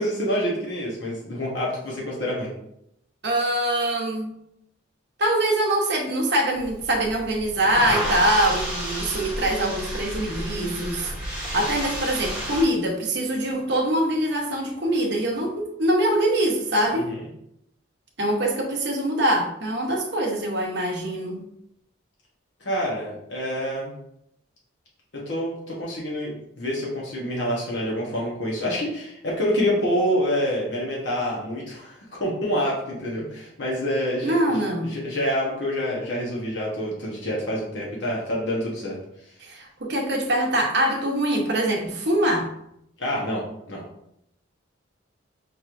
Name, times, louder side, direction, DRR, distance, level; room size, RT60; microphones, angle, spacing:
voice 1, 0.0-2.5 17.0-17.2 22.6-23.9 25.1-34.6 34.9-38.9 43.0-43.4 43.7-43.8, equal, 60° left, -4 dB, 1.0 m, -27 dB
voice 2, 3.2-4.3 5.2-11.1 11.5-17.1 18.2-21.4 34.2-34.9 39.4-42.5, right 1 dB, 55° right, 0 dB, 0.8 m, -23 dB
sound 1, 6.6-12.6, equal, 5° right, 1.0 m, -31 dB
5.1 x 3.0 x 2.5 m, 0.77 s
head